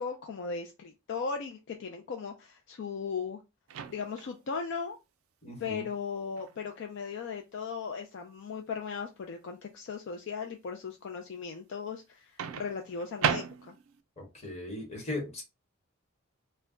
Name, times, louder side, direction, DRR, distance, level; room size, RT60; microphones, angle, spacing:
voice 1, 0.0-3.4 3.9-5.0 5.6-13.8, left 5 dB, 55° left, 0.3 m, -37 dB
Microwave oven, 3.7-4.4 6.4-6.6 12.4-14.0, right 7 dB, 70° right, 0.3 m, -34 dB
voice 2, 5.4-5.9 14.2-15.4, left 2 dB, 30° left, 1.1 m, -38 dB
2.2 x 2.1 x 3.6 m
head